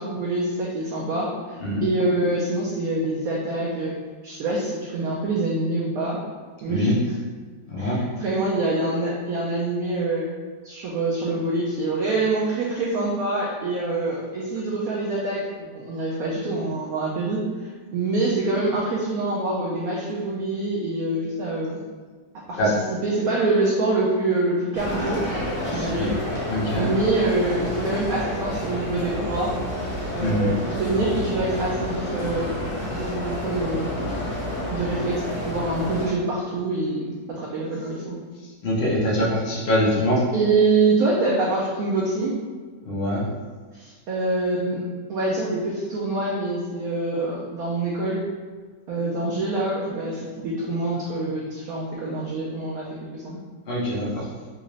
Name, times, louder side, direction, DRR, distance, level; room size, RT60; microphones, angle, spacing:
voice 1, 0.0-3.9 4.2-6.2 6.6-7.0 7.8-10.3 10.6-21.8 22.5-22.6 22.9-25.2 25.7-26.1 26.8-29.5 30.1-32.5 32.9-34.3 34.7-38.2 40.3-42.3 43.7-44.8 45.1-48.2 48.9-52.9 53.1-53.4, right 2 dB, 70° right, -4 dB, 0.9 m, -25 dB
voice 2, 7.7-8.0 22.6-22.7 26.0-26.1 26.5-26.9 30.2-30.5 38.4-40.2 42.8-43.3 53.7-54.3, equal, 80° left, -5 dB, 0.5 m, -24 dB
sound 1, 24.7-36.1, left 1 dB, 55° left, 1.1 m, -29 dB
3.8 x 2.5 x 3.0 m, 1.4 s
omnidirectional pair, 2.0 m